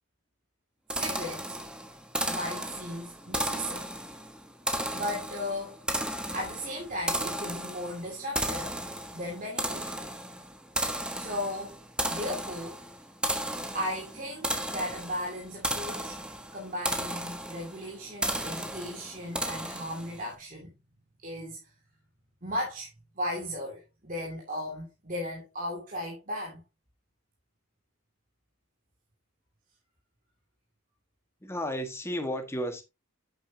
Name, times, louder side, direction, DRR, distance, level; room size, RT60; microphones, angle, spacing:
sound 1, 0.9-20.3, right 1 dB, 5° right, 1.3 m, -34 dB
voice 1, 0.9-1.6 2.3-3.9 4.9-5.8 6.3-8.8 9.1-10.1 11.1-11.8 12.1-12.8 13.7-16.2 16.5-20.7 21.2-21.6 22.4-22.9 23.2-26.6, left 1 dB, 40° right, 2.6 m, -36 dB
voice 2, 31.4-32.8, equal, 10° left, 1.6 m, -33 dB
9.8 x 8.3 x 2.9 m
head